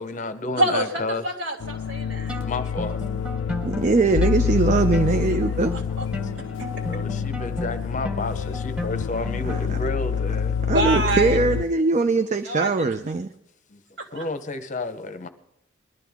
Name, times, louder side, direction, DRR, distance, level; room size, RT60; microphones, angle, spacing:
voice 1, 0.0-1.2 2.3-3.0 5.3-5.4 6.4-6.5 6.9-10.6 13.7-13.8 14.1-15.3, left 2 dB, 40° left, 0.8 m, -31 dB
voice 2, 0.6-2.4 5.7-6.1 6.7-6.8 10.7-11.4 12.4-12.9 14.0-14.2, right 2 dB, 65° right, 2.3 m, -26 dB
sound 1, 1.6-11.6, left 7 dB, 70° left, 0.4 m, -27 dB
sound 2, 2.3-9.9, left 1 dB, 5° right, 1.3 m, -35 dB
voice 3, 3.6-5.7 9.4-9.8 10.7-13.3, right 3 dB, 35° right, 0.5 m, -21 dB
20.5 x 12.0 x 3.5 m
head